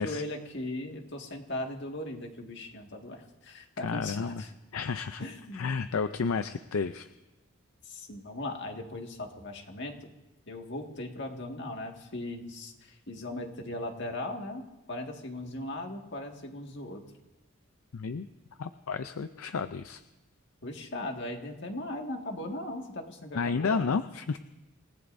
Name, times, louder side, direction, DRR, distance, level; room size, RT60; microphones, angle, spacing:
voice 1, 0.0-4.5 5.2-5.7 7.8-10.1 10.5-17.0 20.6-23.9, left 1 dB, 55° left, 2 dB, 1.9 m, -38 dB
voice 2, 3.8-4.4 4.7-5.2 5.5-7.1 17.9-18.3 18.6-20.0 23.4-24.4, left 5 dB, 75° left, 10 dB, 0.5 m, -31 dB
28.0 x 18.0 x 2.6 m, 1.0 s
head